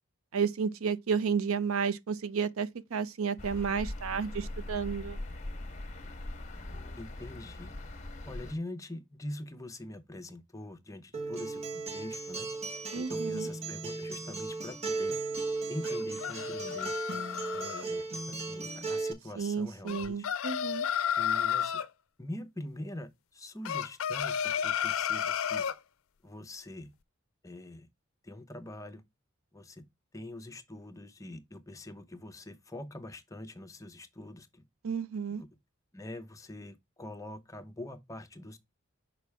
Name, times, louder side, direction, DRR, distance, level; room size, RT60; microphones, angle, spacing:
voice 1, 0.3-5.2 12.9-13.5 19.4-20.9 34.8-35.4, right 6 dB, 75° right, 0.5 m, -32 dB
sound 1, 3.4-8.5, left 1 dB, 35° left, 1.0 m, -41 dB
voice 2, 7.0-7.7 8.2-12.5 12.9-15.2 15.7-17.0 17.5-20.3 21.2-21.8 22.2-25.6 26.2-26.9 27.4-27.9 28.2-29.0 29.5-29.9 30.1-34.6 35.3-35.5 35.9-38.6, left 1 dB, 15° left, 0.7 m, -44 dB
Acoustic guitar, 11.1-19.1, right 3 dB, 30° right, 1.1 m, -36 dB
sound 2, 15.8-17.8 19.9-21.9 23.6-25.8, left 8 dB, 70° left, 0.5 m, -32 dB
5.9 x 4.7 x 3.4 m
head